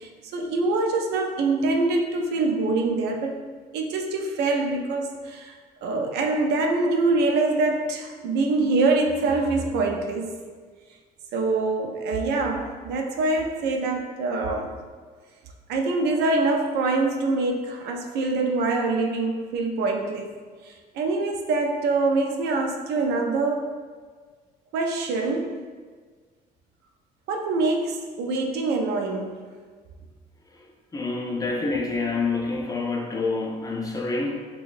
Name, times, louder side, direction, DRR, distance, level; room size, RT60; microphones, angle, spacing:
voice 1, 0.0-3.4 3.7-10.3 11.3-14.8 15.7-20.3 20.6-23.7 24.7-25.5 27.3-29.4, right 3 dB, 75° right, 2 dB, 0.5 m, -25 dB
voice 2, 30.9-34.4, left 3 dB, 20° left, 0 dB, 0.5 m, -27 dB
4.6 x 2.2 x 2.5 m, 1.5 s
cardioid pair, 110°, 17 cm